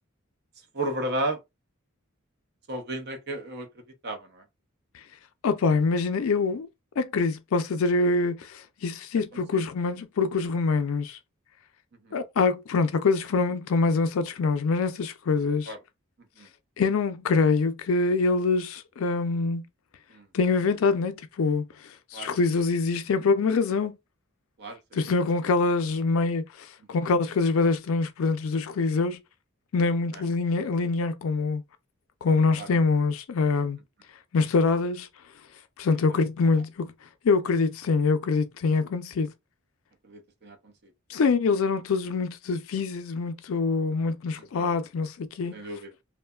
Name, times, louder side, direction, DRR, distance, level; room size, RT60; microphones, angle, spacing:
voice 1, 0.7-1.4 2.7-3.7 4.0-4.4 9.5-9.6 12.0-12.2 15.7-15.8 16.2-16.5 20.1-20.3 22.1-22.3 24.6-25.1 30.1-30.2 32.6-32.7 40.0-40.9 44.4-44.7 45.5-45.9, right 1 dB, 55° right, 0.7 m, -34 dB
voice 2, 5.4-6.7 7.0-11.2 12.1-15.7 16.8-19.7 20.3-21.7 22.1-23.9 24.9-29.2 29.7-31.6 32.2-33.8 34.3-35.1 35.8-36.9 37.2-39.3 41.1-45.6, left 4 dB, 70° left, 0.4 m, -25 dB
3.0 x 2.1 x 2.2 m
head